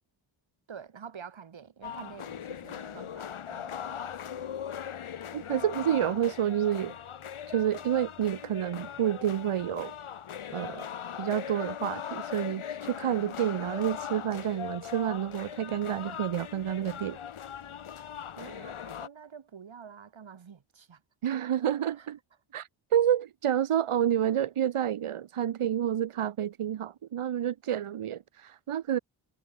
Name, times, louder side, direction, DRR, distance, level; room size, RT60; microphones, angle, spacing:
voice 1, 0.7-4.4 18.4-21.0 21.3-21.4 22.0-22.1, right 7 dB, 65° right, 7.7 m, -48 dB
sound 1, 1.8-19.1, left 9 dB, 75° left, 3.7 m, -40 dB
voice 2, 5.3-6.9 7.5-9.9 10.5-10.9 11.2-17.2 21.2-22.2 22.5-29.0, right 10 dB, 85° right, 2.7 m, -29 dB
cardioid pair, 70°, 49 cm